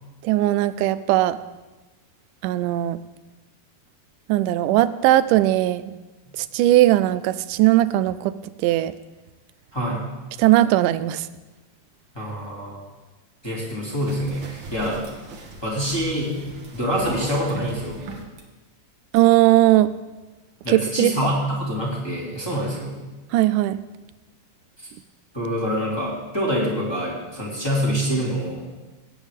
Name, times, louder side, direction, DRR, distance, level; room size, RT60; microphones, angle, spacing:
voice 1, 0.2-1.4 2.4-3.0 4.3-5.9 6.4-8.3 8.6-8.9 10.4-11.3 19.1-19.9 20.7-21.1 23.3-23.8, right 15 dB, 90° right, 15 dB, 2.1 m, -18 dB
voice 2, 9.7-10.0 12.1-12.8 13.4-15.1 15.6-16.4 16.7-18.0 20.6-23.0 24.8-24.9 25.3-28.6, equal, 10° left, -5 dB, 2.2 m, -26 dB
sound 1, 13.9-18.4 19.2-19.3, right 2 dB, 50° right, 1.7 m, -38 dB
18.5 x 9.0 x 3.6 m, 1.2 s
omnidirectional pair, 3.6 m